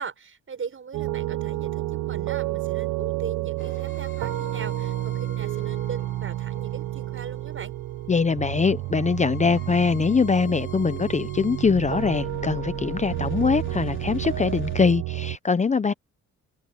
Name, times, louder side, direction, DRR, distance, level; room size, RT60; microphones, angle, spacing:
voice 1, 0.0-7.7, right 6 dB, 45° right, 6.6 m, -38 dB
sound 1, 0.9-15.4, right 16 dB, 85° right, 1.2 m, -30 dB
sound 2, 3.6-14.8, left 6 dB, 40° left, 4.0 m, -44 dB
voice 2, 8.1-15.9, left 5 dB, 25° left, 0.7 m, -23 dB
cardioid pair, 90°, 30 cm